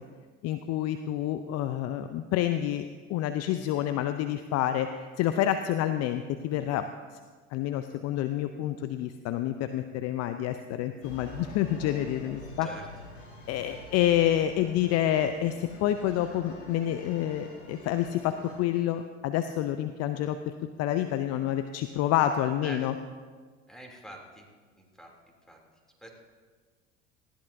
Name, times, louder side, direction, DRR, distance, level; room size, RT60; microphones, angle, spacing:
voice 1, 0.4-2.8 3.1-6.9 7.5-12.7 13.5-20.5 20.8-23.0, left 11 dB, 40° left, 9 dB, 0.6 m, -28 dB
sound 1, 11.0-18.6, left 1 dB, 85° left, 4.3 m, -47 dB
voice 2, 23.7-24.5 24.8-25.1 25.5-25.6 26.0-26.1, right 1 dB, ahead, 0 dB, 2.8 m, -45 dB
19.0 x 14.5 x 2.7 m, 1.5 s
hypercardioid pair, 80°, 39 cm